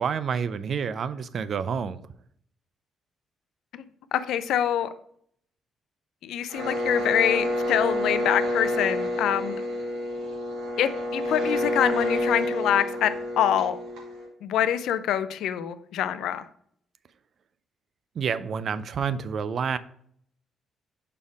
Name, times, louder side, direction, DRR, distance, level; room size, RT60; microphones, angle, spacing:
voice 1, 0.0-2.0 18.2-19.8, right 6 dB, 55° right, 15 dB, 0.4 m, -28 dB
voice 2, 4.1-4.9 6.2-9.5 10.8-13.1 13.4-13.8 14.4-16.4, left 10 dB, 80° left, 12 dB, 0.4 m, -25 dB
sound 1, 6.5-14.3, left 1 dB, 85° right, 2.3 m, -28 dB
5.4 x 4.3 x 4.7 m, 0.66 s
cardioid pair, 90°, 0 cm